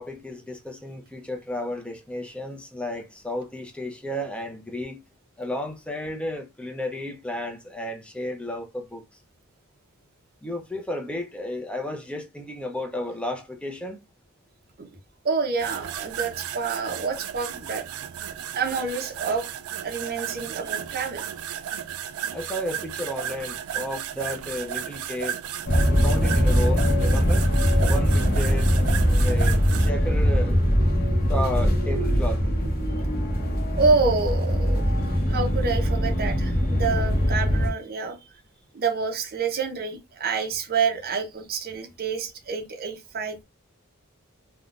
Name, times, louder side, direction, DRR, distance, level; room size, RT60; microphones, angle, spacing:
voice 1, 0.0-5.0 5.4-9.0 10.4-14.0 22.3-25.4 25.9-27.5 27.7-28.7 29.2-30.6 31.3-32.4, left 1 dB, 5° left, 0.5 m, -33 dB
voice 2, 15.2-17.8 18.6-19.5 19.8-21.2 33.8-34.8 35.3-38.2 38.7-43.4, right 4 dB, 45° right, 0.6 m, -27 dB
sound 1, 15.6-29.9, right 9 dB, 85° right, 0.3 m, -34 dB
sound 2, 25.7-37.7, equal, 45° left, 0.7 m, -22 dB
3.5 x 2.2 x 2.4 m
head